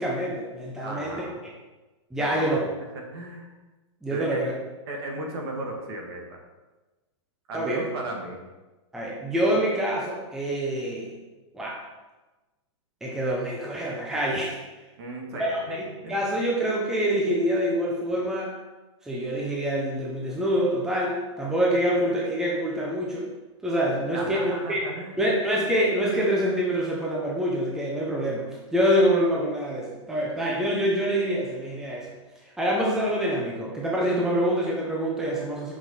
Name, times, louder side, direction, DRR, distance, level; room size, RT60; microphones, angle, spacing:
voice 1, 0.0-1.3 2.1-2.6 4.0-4.5 7.5-7.9 8.9-11.1 11.5-11.8 13.0-14.6 15.3-15.8 16.1-18.5 19.0-23.3 23.6-24.8 25.2-32.1 32.4-35.8, equal, 5° right, -4 dB, 0.8 m, -26 dB
voice 2, 0.8-1.4 2.2-2.6 2.9-3.5 4.1-4.6 4.9-6.4 7.5-8.4 15.0-16.2 24.1-25.2, right 2 dB, 55° right, 1 dB, 1.7 m, -35 dB
7.0 x 5.9 x 4.1 m, 1.2 s
hypercardioid pair, 160°, 16 cm